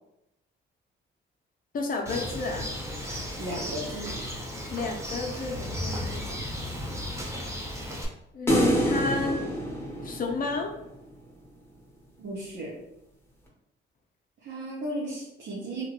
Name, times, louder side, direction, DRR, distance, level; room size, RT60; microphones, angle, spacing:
voice 1, 1.7-2.7 4.7-6.3 8.3-9.4 10.0-10.7, left 3 dB, 45° left, 3 dB, 0.7 m, -31 dB
Bird, 2.1-8.1, equal, 15° right, 0.7 m, -35 dB
voice 2, 3.4-4.2 12.2-12.8 14.4-15.8, right 1 dB, 70° right, -5 dB, 0.9 m, -35 dB
sound 1, 8.5-10.9, equal, 10° left, 0.9 m, -26 dB
2.9 x 2.5 x 3.0 m, 0.84 s
cardioid pair, 90°, 20 cm